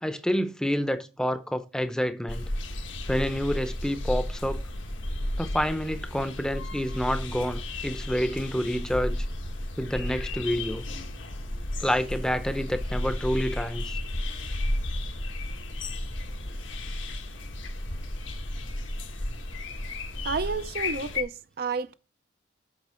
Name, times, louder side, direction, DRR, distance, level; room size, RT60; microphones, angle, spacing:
voice 1, 0.0-2.5 3.1-4.6 5.4-9.2 9.8-10.8 11.8-14.0, equal, 5° left, 0.6 m, -28 dB
sound 1, 2.3-21.2, left 1 dB, 85° left, 1.5 m, -33 dB
voice 2, 20.2-21.9, right 4 dB, 50° right, 0.5 m, -30 dB
8.3 x 5.8 x 4.3 m
head